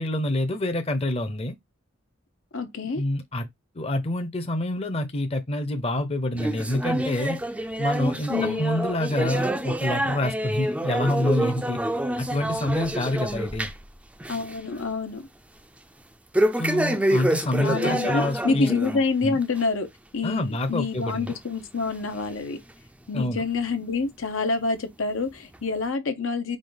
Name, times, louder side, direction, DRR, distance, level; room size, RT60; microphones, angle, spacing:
voice 1, 0.0-1.5 2.9-3.5 3.7-7.4 7.8-11.8 12.2-13.7 16.6-18.7 19.2-19.4 20.2-21.3 23.1-23.4, left 1 dB, 30° left, 0.7 m, -27 dB
voice 2, 2.5-3.0 8.3-8.7 14.3-15.3 17.5-22.6 23.1-26.6, left 4 dB, 75° left, 0.8 m, -27 dB
sound 1, 6.4-13.9 14.2-14.6 14.9-15.0 16.3-19.0 19.4-19.6 20.3-20.4 21.3-21.4 22.1-22.2, right 1 dB, 5° right, 0.4 m, -27 dB
5.0 x 2.3 x 3.9 m
head